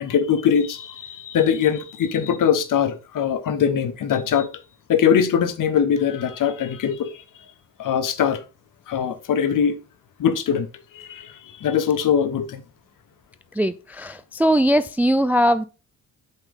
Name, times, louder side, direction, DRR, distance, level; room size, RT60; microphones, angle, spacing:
voice 1, 0.0-4.5 4.9-7.2 7.8-8.4 8.9-9.8 10.2-10.7 10.9-12.6, left 8 dB, 55° left, 1.0 m, -22 dB
voice 2, 13.6-15.6, equal, 5° right, 0.3 m, -20 dB
8.0 x 3.5 x 3.8 m
supercardioid pair, 60°, 38 cm